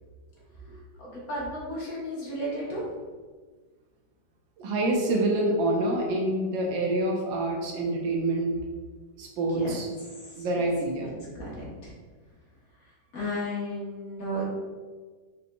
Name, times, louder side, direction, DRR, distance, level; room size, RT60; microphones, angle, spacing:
voice 1, 0.6-2.9 9.5-10.7 11.0-11.9 13.1-14.4, equal, 55° left, -6 dB, 1.3 m, -35 dB
voice 2, 4.6-8.5 9.2-9.9 10.4-11.1, right 2 dB, 85° right, 0 dB, 1.5 m, -26 dB
4.0 x 3.9 x 2.2 m, 1.4 s
omnidirectional pair, 2.0 m